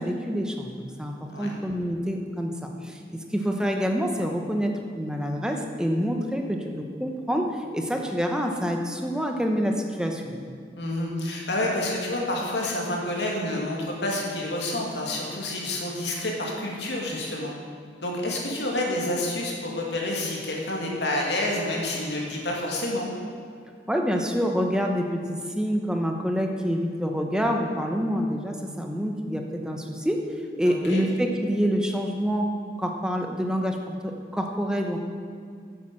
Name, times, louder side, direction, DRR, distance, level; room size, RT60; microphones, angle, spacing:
voice 1, 0.0-10.4 23.9-30.2 30.6-35.0, equal, 5° right, 2 dB, 0.9 m, -27 dB
voice 2, 10.8-17.5 18.0-23.1 30.6-31.0, left 1 dB, 75° left, -2 dB, 2.4 m, -28 dB
9.1 x 8.2 x 7.6 m, 2.2 s
head